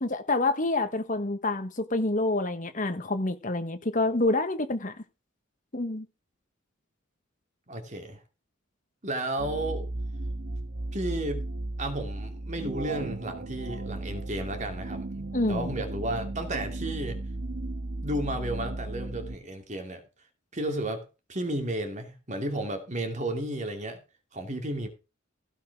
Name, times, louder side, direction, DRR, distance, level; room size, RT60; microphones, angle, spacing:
voice 1, 0.0-4.9 5.7-6.0 15.3-15.7, left 2 dB, 40° left, 1.2 m, -27 dB
voice 2, 7.7-8.2 9.0-9.9 10.9-11.5 11.8-17.2 18.0-20.0 20.5-24.0 24.3-24.9, right 1 dB, 35° right, 2.8 m, -33 dB
sound 1, 9.4-19.4, right 2 dB, 55° right, 1.2 m, -35 dB
16.0 x 5.6 x 6.1 m
head